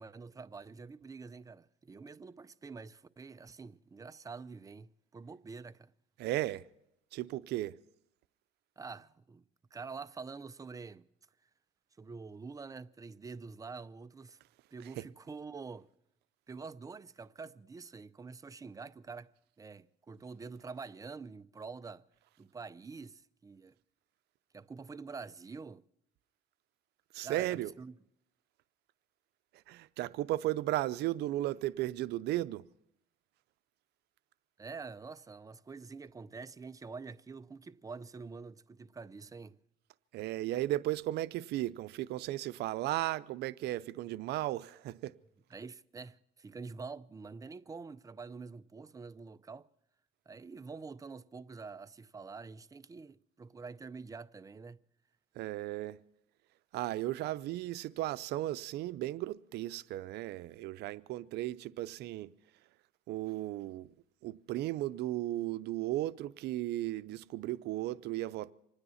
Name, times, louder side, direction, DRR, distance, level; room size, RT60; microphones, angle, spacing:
voice 1, 0.0-5.9 8.8-9.4 9.7-11.1 12.0-14.4 14.7-15.9 16.5-19.3 19.6-22.0 22.4-23.7 24.5-25.8 27.2-27.9 34.6-39.6 45.5-49.7 50.3-54.8, right 4 dB, 20° right, 0.5 m, -46 dB
voice 2, 6.2-6.7 7.1-7.8 15.0-15.1 27.1-27.7 29.5-32.6 40.1-45.1 55.3-56.0 56.7-62.3 63.1-63.9 64.2-68.5, right 15 dB, 80° right, 0.6 m, -35 dB
25.5 x 9.8 x 5.6 m
cardioid pair, 110°, 17 cm